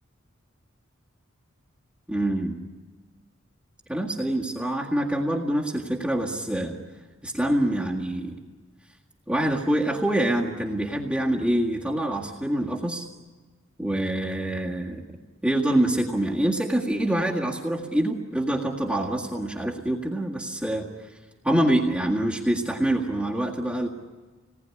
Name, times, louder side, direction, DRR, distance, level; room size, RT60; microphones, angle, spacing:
voice 1, 2.1-2.6 3.9-6.8 7.2-8.4 9.3-13.1 13.8-15.0 15.4-20.9 21.4-23.9, right 1 dB, 5° right, -4 dB, 1.8 m, -25 dB
27.5 x 19.5 x 9.8 m, 1.4 s
head